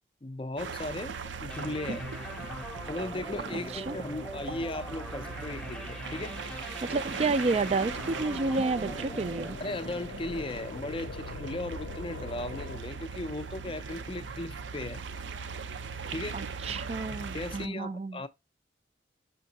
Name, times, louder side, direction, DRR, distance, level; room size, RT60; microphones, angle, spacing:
voice 1, 0.2-2.1 2.9-6.4 9.6-15.1 16.1-16.5 17.1-18.3, left 2 dB, 30° left, 0.4 m, -37 dB
sound 1, 0.6-17.7, right 5 dB, 75° right, 0.6 m, -39 dB
sound 2, 1.5-10.8, equal, 5° left, 0.7 m, -42 dB
voice 2, 3.5-4.0 6.9-9.6 16.3-18.2, right 3 dB, 35° right, 0.3 m, -30 dB
sound 3, 7.6-12.8, left 4 dB, 75° left, 0.5 m, -43 dB
6.1 x 5.6 x 2.8 m
head